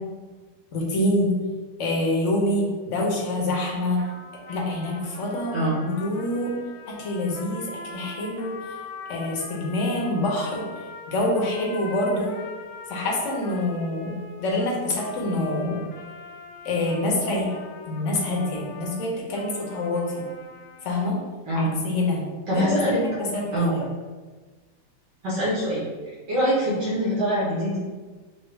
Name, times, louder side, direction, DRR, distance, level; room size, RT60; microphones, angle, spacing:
voice 1, 0.7-1.3 1.8-4.0 4.5-6.5 6.9-8.7 9.1-10.7 11.1-12.3 12.9-15.8 16.6-17.5 17.9-20.1 20.8-21.2 21.5-22.2 22.5-23.8, left 1 dB, 50° left, -3 dB, 1.1 m, -26 dB
sound 1, 4.0-21.1, left 4 dB, 75° left, 1.1 m, -42 dB
voice 2, 5.5-5.8 21.5-21.8 22.5-23.0 23.5-23.7 25.2-25.8 26.3-27.8, equal, 65° right, -9 dB, 1.9 m, -24 dB
6.0 x 2.4 x 3.4 m, 1.3 s
omnidirectional pair, 2.0 m